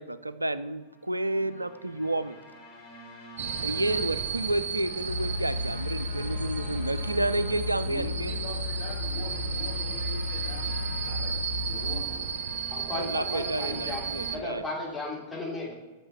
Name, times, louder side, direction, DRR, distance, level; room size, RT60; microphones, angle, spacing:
voice 1, 0.0-2.4 3.6-8.4 12.9-14.7, right 1 dB, 85° right, 14 dB, 0.3 m, -30 dB
sound 1, 0.8-14.4, left 1 dB, 40° left, 2.3 m, -49 dB
sound 2, 3.4-14.4, right 6 dB, 60° right, 0.7 m, -34 dB
sound 3, 5.1-12.0, left 3 dB, 80° left, 0.5 m, -34 dB
voice 2, 7.8-10.7 11.0-11.3 11.6-12.2, left 1 dB, 60° left, -2 dB, 2.8 m, -43 dB
voice 3, 12.7-14.0 14.3-15.7, left 2 dB, 5° left, -5 dB, 2.7 m, -35 dB
7.7 x 6.6 x 4.4 m, 1.2 s
figure-of-eight pair, 95°, 0 cm